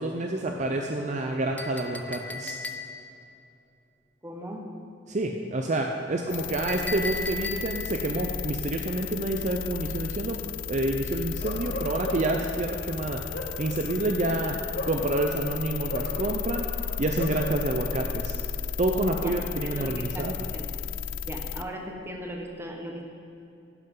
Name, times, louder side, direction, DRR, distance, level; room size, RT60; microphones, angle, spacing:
voice 1, 0.0-2.6 5.1-10.4 10.7-13.2 13.6-14.6 14.9-16.7 17.0-18.3 18.8-20.5, right 2 dB, 40° right, 2 dB, 0.6 m, -28 dB
Chink clink, 1.6-3.2 6.7-8.0, left 2 dB, 10° left, 0.5 m, -36 dB
voice 2, 4.2-4.6 19.2-19.3 19.6-20.3 20.5-20.7 21.3-23.1, equal, 15° right, 1 dB, 1.2 m, -38 dB
sound 1, 6.3-21.6, left 7 dB, 75° left, 0.4 m, -34 dB
Bark, 11.4-12.5 13.1-15.4 15.9-17.4, left 1 dB, 55° left, 1.5 m, -37 dB
11.0 x 11.0 x 3.8 m, 2.7 s
head